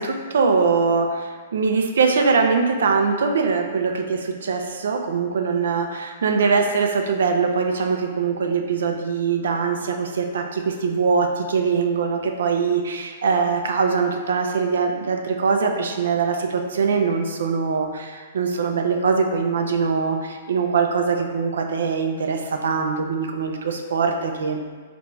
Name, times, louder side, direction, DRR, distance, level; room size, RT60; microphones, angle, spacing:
voice 1, 0.0-24.6, right 5 dB, 75° right, 4 dB, 0.4 m, -22 dB
3.3 x 2.5 x 3.1 m, 1.5 s
hypercardioid pair, 130°, 0 cm